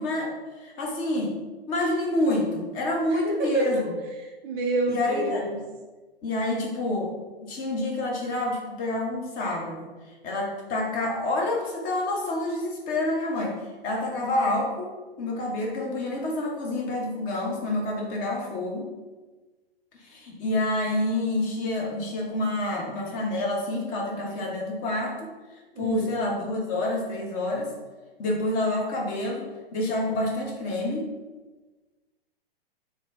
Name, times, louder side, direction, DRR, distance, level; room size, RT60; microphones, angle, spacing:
voice 1, 0.0-1.4 1.7-3.8 4.9-5.6 6.2-7.1 7.4-9.9 10.2-13.6 13.8-18.9 20.0-25.3 25.8-27.7 28.2-31.1, left 2 dB, 25° left, -1 dB, 0.9 m, -28 dB
voice 2, 3.1-3.9 4.2-5.6 25.7-26.1, right 2 dB, 15° right, 1 dB, 0.3 m, -28 dB
3.4 x 2.6 x 3.9 m, 1.3 s
figure-of-eight pair, 115°, 30 cm